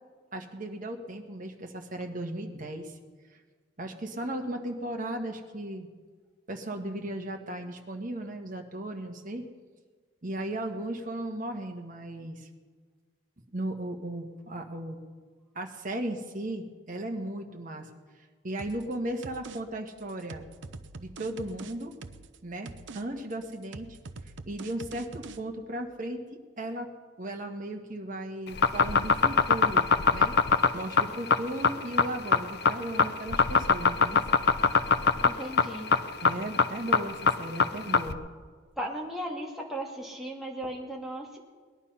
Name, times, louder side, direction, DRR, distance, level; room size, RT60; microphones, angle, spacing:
voice 1, 0.3-3.0 3.8-5.9 6.5-9.4 10.2-12.5 13.5-15.0 15.5-17.9 18.4-20.4 21.0-21.9 22.4-24.0 24.5-26.2 26.6-26.9 27.2-30.4 30.7-34.2 36.2-38.2, right 1 dB, 45° right, 3 dB, 1.5 m, -36 dB
sound 1, 18.6-18.9 19.2-19.6 19.9-22.4 22.7-23.0 23.3-25.4, right 3 dB, 65° right, 0.7 m, -44 dB
sound 2, 28.5-38.1, left 5 dB, 55° left, 0.6 m, -22 dB
voice 2, 35.2-35.9 38.8-41.4, right 1 dB, ahead, -2 dB, 1.8 m, -36 dB
19.5 x 11.0 x 5.6 m, 1.5 s
head